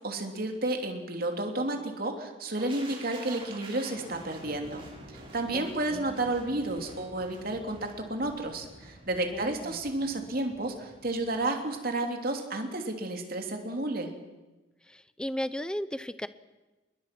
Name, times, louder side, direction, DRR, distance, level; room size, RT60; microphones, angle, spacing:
voice 1, 0.0-14.1, right 2 dB, 50° right, 4 dB, 3.0 m, -32 dB
sound 1, 2.6-12.4 12.7-12.9, right 1 dB, 30° right, 7.3 m, -49 dB
voice 2, 5.9-6.3 9.3-9.8 14.9-16.3, equal, 5° left, 14 dB, 0.7 m, -36 dB
27.0 x 22.0 x 6.1 m, 1.1 s
head